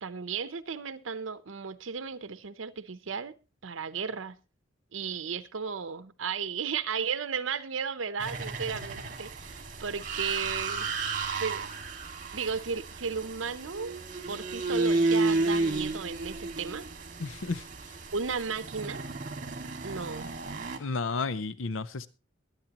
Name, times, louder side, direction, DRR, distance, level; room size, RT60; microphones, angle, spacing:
voice 1, 0.0-3.3 3.6-4.4 4.9-10.9 11.4-11.6 12.3-13.9 14.3-16.9 18.1-19.0 19.8-20.3, right 5 dB, 85° right, 0.7 m, -34 dB
sound 1, 8.2-20.8, right 3 dB, 45° right, 2.0 m, -32 dB
voice 2, 17.2-17.7 20.8-22.1, left 4 dB, 85° left, 0.7 m, -32 dB
22.5 x 8.8 x 2.9 m
head